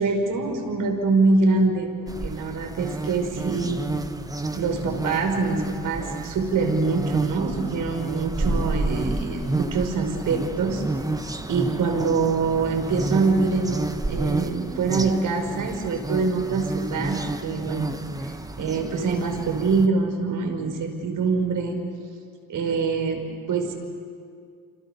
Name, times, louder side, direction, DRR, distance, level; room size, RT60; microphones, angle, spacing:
voice 1, 0.0-1.9 2.2-3.8 4.5-10.8 11.5-13.8 14.1-17.9 18.6-21.8 22.5-23.2 23.5-23.7, right 4 dB, 55° right, 4 dB, 5.5 m, -24 dB
sound 1, 2.1-19.9, right 2 dB, 10° right, 1.4 m, -31 dB
27.5 x 27.5 x 7.0 m, 2.2 s
supercardioid pair, 75°, 37 cm